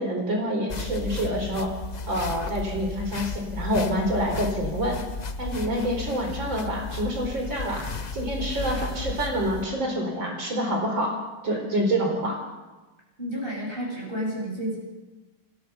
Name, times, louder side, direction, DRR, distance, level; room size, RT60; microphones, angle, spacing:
voice 1, 0.0-1.7 2.1-5.0 5.4-7.8 8.1-11.1 11.4-12.4, equal, 65° right, 2 dB, 5.0 m, -27 dB
sound 1, 0.7-9.6, left 3 dB, 85° left, 0.3 m, -34 dB
voice 2, 13.2-14.8, equal, 25° right, -4 dB, 8.4 m, -31 dB
28.5 x 14.0 x 7.1 m, 1.2 s
omnidirectional pair, 2.2 m